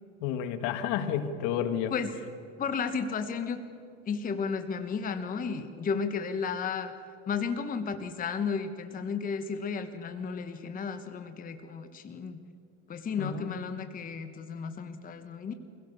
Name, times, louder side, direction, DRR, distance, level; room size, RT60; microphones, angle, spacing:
voice 1, 0.2-1.9 13.2-13.6, left 9 dB, 60° left, 10 dB, 1.8 m, -31 dB
voice 2, 2.6-3.6 4.0-6.9 7.3-12.4 12.9-15.5, left 5 dB, 25° left, 8 dB, 1.1 m, -33 dB
23.0 x 16.5 x 6.8 m, 2.4 s
supercardioid pair, 120°, 36 cm